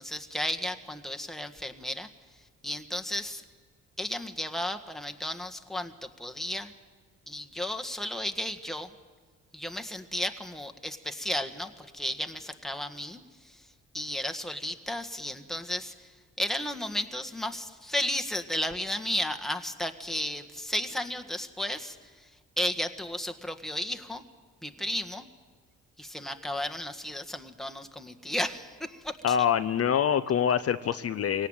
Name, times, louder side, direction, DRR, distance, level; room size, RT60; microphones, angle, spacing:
voice 1, 0.0-2.1 2.6-3.4 4.0-6.7 7.3-8.9 9.5-13.7 13.9-22.3 22.6-24.2 24.6-25.3 26.0-29.4, left 1 dB, ahead, 5 dB, 1.6 m, -34 dB
voice 2, 29.2-31.5, left 8 dB, 50° left, 12 dB, 0.8 m, -25 dB
24.0 x 18.0 x 9.0 m, 1.5 s
cardioid pair, 90°, 30 cm